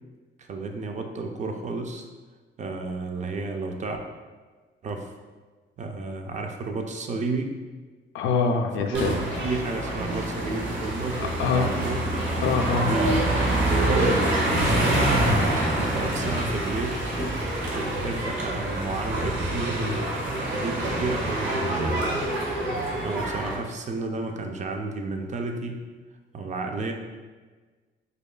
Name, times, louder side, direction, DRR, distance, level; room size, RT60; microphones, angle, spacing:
voice 1, 0.4-2.1 2.6-4.0 4.8-5.1 5.8-7.5 8.8-12.0 12.8-13.2 13.6-15.3 15.8-17.0 17.7-22.2 23.0-25.8 26.3-26.9, right 3 dB, 35° right, 4 dB, 0.4 m, -31 dB
voice 2, 8.1-9.1 11.2-11.7 12.4-12.9, left 4 dB, 80° left, 4 dB, 0.4 m, -24 dB
sound 1, 8.9-23.6, right 1 dB, 70° right, 0.9 m, -26 dB
5.0 x 2.3 x 2.2 m, 1.4 s
cardioid pair, 90°, 20 cm